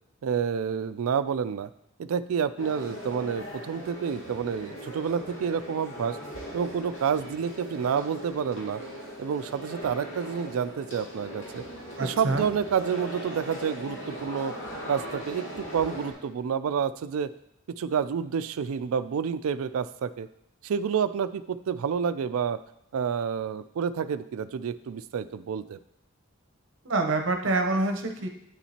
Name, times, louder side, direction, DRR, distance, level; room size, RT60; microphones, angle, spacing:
voice 1, 0.2-1.7 2.0-6.2 6.5-8.8 9.2-11.6 12.0-14.5 14.9-17.3 17.8-20.3 20.6-22.6 22.9-25.8, right 7 dB, 80° right, 12 dB, 0.3 m, -29 dB
sound 1, 2.6-16.1, equal, 60° left, 2.5 m, -39 dB
voice 2, 12.0-12.4 26.8-28.3, right 2 dB, 60° right, 4 dB, 0.8 m, -26 dB
9.0 x 7.1 x 2.9 m, 0.75 s
head